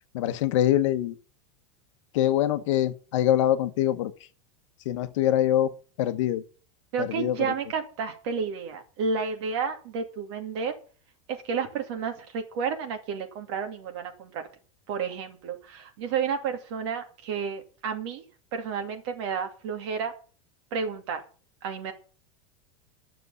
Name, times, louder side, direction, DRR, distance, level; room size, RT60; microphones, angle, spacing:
voice 1, 0.1-1.1 2.1-4.1 4.8-5.7 6.0-6.4 7.0-7.5, left 12 dB, 60° left, 1.0 m, -24 dB
voice 2, 6.9-10.7 11.3-14.4 14.9-18.2 18.5-20.1 20.7-21.2 21.6-21.9, right 6 dB, 50° right, 2.4 m, -31 dB
12.0 x 6.8 x 6.9 m
supercardioid pair, 175°, 17 cm